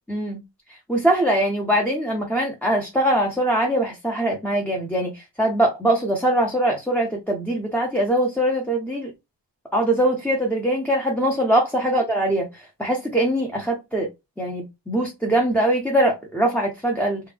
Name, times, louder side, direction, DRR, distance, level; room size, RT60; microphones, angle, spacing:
voice 1, 0.1-0.4 0.9-9.1 9.7-12.5 12.8-14.1 14.4-17.2, right 1 dB, 5° left, 0.5 m, -22 dB
3.4 x 2.1 x 3.3 m
wide cardioid pair, 155°, 43 cm